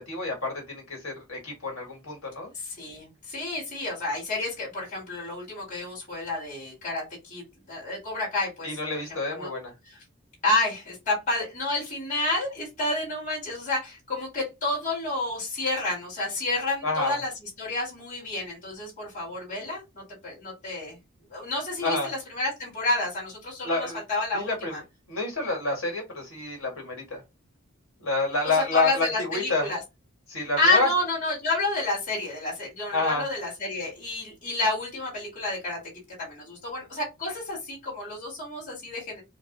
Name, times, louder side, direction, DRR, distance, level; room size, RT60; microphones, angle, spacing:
voice 1, 0.1-2.5 8.6-9.7 16.8-17.2 21.8-22.1 23.6-24.0 24.3-24.8 25.1-27.2 28.0-29.6 30.3-30.9 32.9-33.2, left 3 dB, 70° left, 1.7 m, -28 dB
voice 2, 2.5-8.7 9.3-9.5 9.9-10.0 10.4-21.0 21.3-24.8 28.3-29.8 30.6-39.2, left 2 dB, 35° left, 2.1 m, -30 dB
4.6 x 2.0 x 3.8 m
head